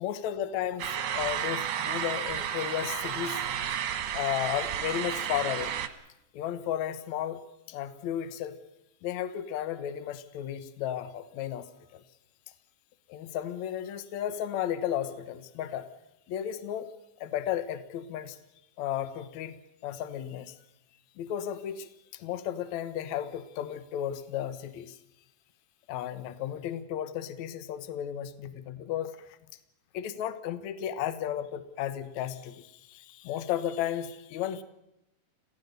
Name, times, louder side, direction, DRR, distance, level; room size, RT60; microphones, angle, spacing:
voice 1, 0.0-3.4 4.1-5.7 6.3-7.4 7.7-8.6 9.0-12.0 13.1-15.9 16.3-16.9 17.2-18.4 18.8-20.6 21.2-25.0 25.9-29.1 29.9-34.6, left 10 dB, 65° left, 13 dB, 2.2 m, -34 dB
sound 1, 0.8-5.9, right 9 dB, 65° right, 2.5 m, -32 dB
27.0 x 17.0 x 6.7 m, 0.88 s
omnidirectional pair, 3.8 m